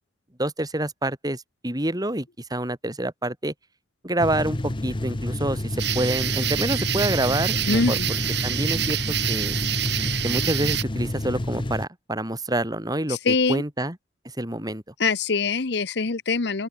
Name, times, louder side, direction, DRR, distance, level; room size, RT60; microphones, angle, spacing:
voice 1, 0.4-3.5 4.0-8.0 8.4-9.0 9.3-9.6 10.2-14.0 14.4-14.8, right 1 dB, 20° right, 5.0 m, -27 dB
sound 1, 4.2-11.9, left 1 dB, 30° left, 0.9 m, -29 dB
sound 2, 5.8-10.8, right 11 dB, 70° right, 5.8 m, -27 dB
voice 2, 7.7-8.1 13.1-13.6 15.0-16.7, left 4 dB, 70° left, 1.0 m, -23 dB
open air
head